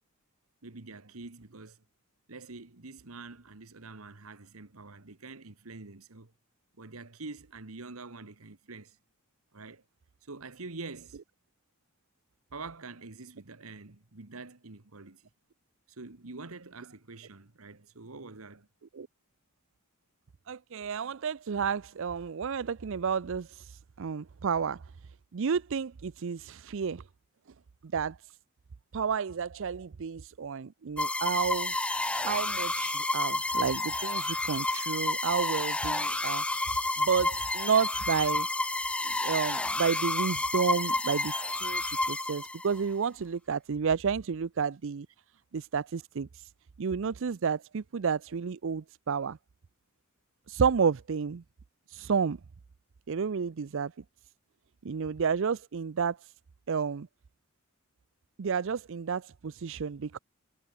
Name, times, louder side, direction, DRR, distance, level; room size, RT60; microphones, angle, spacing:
voice 1, 0.6-1.8 2.3-6.3 6.8-9.0 9.5-9.8 10.2-11.2 12.5-15.2 15.9-18.7, right 3 dB, 85° right, 1.6 m, -45 dB
voice 2, 20.5-24.8 25.3-27.0 27.9-28.2 28.9-31.7 32.2-36.4 37.0-38.5 39.0-45.1 45.5-46.5 46.8-49.4 50.5-51.4 51.9-52.4 53.1-53.9 54.8-56.3 56.7-57.1 58.4-60.2, right 6 dB, 65° right, 0.5 m, -31 dB
sound 1, 31.0-42.8, left 2 dB, 5° left, 0.3 m, -30 dB
head